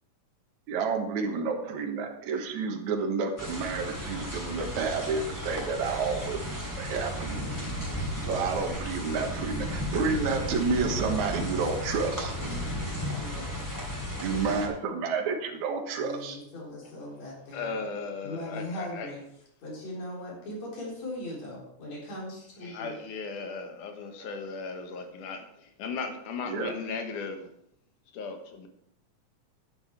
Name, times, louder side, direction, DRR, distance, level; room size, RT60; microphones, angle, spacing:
voice 1, 0.7-6.4 6.8-7.5 7.9-12.3 14.2-16.4 26.5-26.7, right 5 dB, 70° right, 2 dB, 2.7 m, -30 dB
sound 1, 3.4-14.7, equal, 5° left, 2.6 m, -34 dB
voice 2, 13.1-13.6 16.0-17.8 18.2-19.2 19.6-23.2 24.2-24.3, left 1 dB, 55° left, -4 dB, 5.1 m, -39 dB
voice 3, 17.5-19.1 22.7-27.5 28.1-28.7, left 4 dB, 75° left, 5 dB, 2.8 m, -36 dB
10.5 x 9.9 x 4.7 m, 0.75 s
omnidirectional pair, 3.6 m